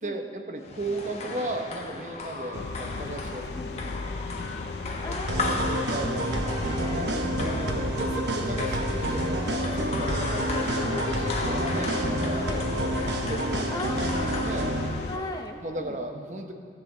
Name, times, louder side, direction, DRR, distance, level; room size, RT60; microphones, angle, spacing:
voice 1, 0.0-3.5 5.1-7.2 8.0-10.4 10.7-14.7 15.6-16.5, right 1 dB, 45° right, 5 dB, 0.8 m, -36 dB
sound 1, 0.6-15.5, left 3 dB, 35° left, 1.1 m, -36 dB
sound 2, 2.5-15.2, left 3 dB, 75° left, 0.5 m, -36 dB
voice 2, 5.0-5.8 6.3-7.1 7.4-8.0 10.4-10.7 12.4-12.6 13.7-14.5 15.0-16.0, left 1 dB, 20° left, 4 dB, 0.6 m, -38 dB
sound 3, 5.3-14.9, right 1 dB, 80° right, 1.0 m, -29 dB
16.0 x 7.5 x 3.9 m, 2.3 s
head